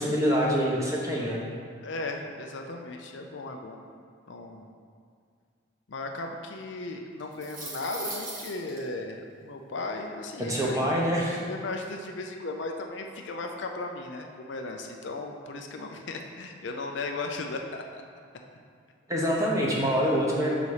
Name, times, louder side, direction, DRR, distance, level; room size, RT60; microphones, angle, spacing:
voice 1, 0.0-1.4 10.4-11.4 19.1-20.5, equal, 15° right, -4 dB, 0.9 m, -25 dB
voice 2, 1.8-3.8 4.3-4.7 5.9-10.9 11.4-18.0 19.7-20.1, left 2 dB, 60° left, 3 dB, 0.5 m, -36 dB
sound 1, 7.2-8.8, right 2 dB, 40° right, 1.4 m, -38 dB
7.0 x 4.0 x 4.9 m, 2.1 s
head